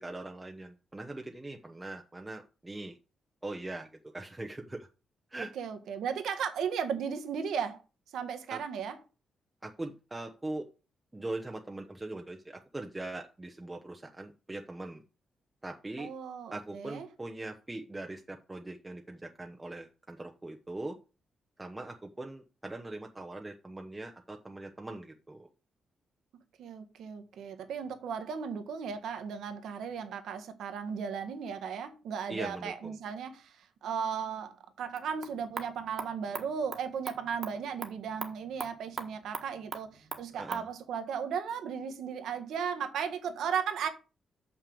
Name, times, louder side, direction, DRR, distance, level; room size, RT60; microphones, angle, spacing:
voice 1, 0.0-3.0 3.4-3.9 4.1-4.9 5.3-5.5 8.5-8.6 9.6-10.6 11.1-15.0 15.6-16.1 16.5-21.0 21.6-25.5 32.3-32.9 40.4-40.6, right 2 dB, 15° right, 0.8 m, -41 dB
voice 2, 5.5-7.8 8.1-9.0 16.0-17.1 26.6-43.9, right 7 dB, 80° right, 1.5 m, -36 dB
sound 1, 34.9-40.7, right 4 dB, 30° right, 1.4 m, -43 dB
6.5 x 6.0 x 6.9 m
cardioid pair, 145°, 0 cm